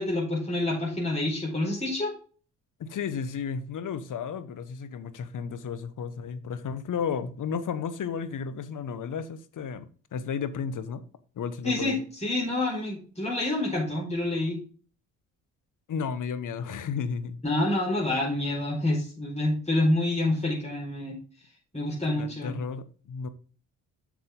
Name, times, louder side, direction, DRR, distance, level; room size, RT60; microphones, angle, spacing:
voice 1, 0.0-2.1 11.6-14.6 17.4-21.2 21.7-22.5, left 1 dB, 15° left, 4.4 m, -27 dB
voice 2, 2.8-11.0 11.4-12.0 15.9-17.4 22.0-23.3, left 6 dB, 50° left, 1.1 m, -33 dB
8.0 x 6.1 x 3.8 m
hypercardioid pair, 50°, 41 cm